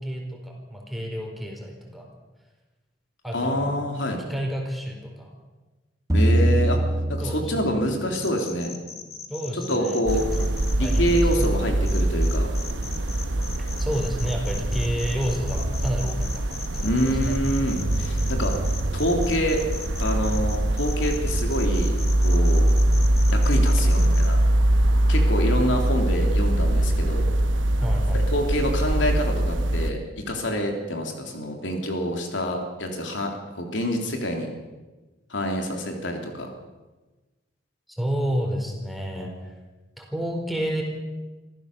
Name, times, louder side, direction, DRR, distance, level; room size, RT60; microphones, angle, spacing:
voice 1, 0.0-2.1 3.2-3.8 4.3-5.3 7.2-7.8 9.3-10.0 10.3-10.4 10.8-11.5 13.6-17.4 23.8-24.1 27.8-28.2 38.0-39.5 40.0-40.8, equal, ahead, 1 dB, 4.5 m, -30 dB
voice 2, 3.3-4.2 6.1-6.8 7.1-8.7 9.5-10.5 10.8-12.5 16.8-18.6 18.9-19.6 20.0-21.9 22.2-22.7 23.3-24.4 25.1-27.3 28.1-34.5 35.3-36.5, equal, 75° left, 3 dB, 3.6 m, -26 dB
sound 1, 6.1-8.5, right 1 dB, 20° right, 1.6 m, -23 dB
sound 2, 8.1-11.5 11.9-24.3, left 6 dB, 35° left, 2.3 m, -39 dB
sound 3, 10.1-29.9, right 1 dB, 85° right, 1.1 m, -23 dB
26.0 x 15.0 x 7.0 m, 1.2 s
head